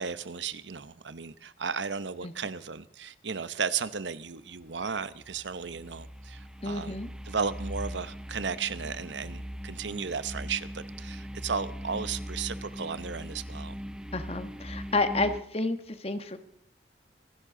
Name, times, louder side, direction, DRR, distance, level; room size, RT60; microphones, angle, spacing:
voice 1, 0.0-7.0 7.3-13.7, right 6 dB, 90° right, 0.9 m, -34 dB
sound 1, 4.7-15.4, equal, 5° right, 0.6 m, -40 dB
voice 2, 6.6-7.1 14.1-16.4, left 2 dB, 35° left, 1.4 m, -30 dB
26.0 x 11.5 x 3.8 m
head